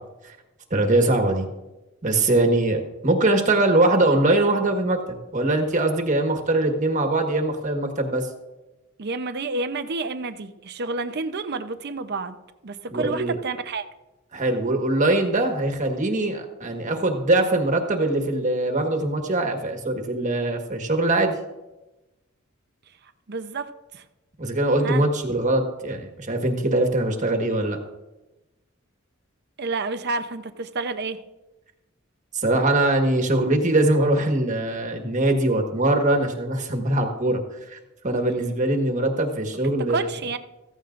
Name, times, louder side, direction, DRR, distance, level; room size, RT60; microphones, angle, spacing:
voice 1, 0.7-1.5 2.0-8.3 12.9-13.4 14.3-21.4 24.4-27.8 32.3-37.8 38.0-40.1, right 2 dB, 35° right, 4 dB, 1.5 m, -22 dB
voice 2, 9.0-12.4 12.6-13.8 23.3-23.7 23.9-24.0 24.8-25.0 29.6-31.2 39.9-40.4, right 3 dB, 50° right, 10 dB, 0.7 m, -29 dB
15.0 x 15.0 x 2.6 m, 1.0 s
head